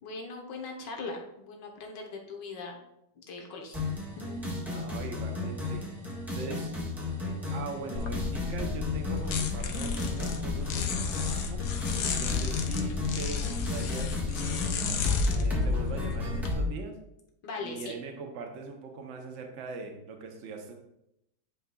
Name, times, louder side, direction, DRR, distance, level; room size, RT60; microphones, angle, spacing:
voice 1, 0.0-2.8 3.2-3.8 4.2-4.4 12.0-12.4 17.4-17.9, left 3 dB, 90° left, 2 dB, 1.7 m, -40 dB
sound 1, 3.7-16.7, left 2 dB, ahead, 1.3 m, -33 dB
voice 2, 4.6-5.8 6.3-6.7 7.1-11.6 12.1-14.8 15.3-17.0 17.6-20.7, right 4 dB, 50° right, 3 dB, 1.1 m, -41 dB
sound 2, 8.0-16.5, left 6 dB, 70° left, 1.3 m, -32 dB
9.3 x 5.4 x 2.3 m, 0.83 s
omnidirectional pair, 1.9 m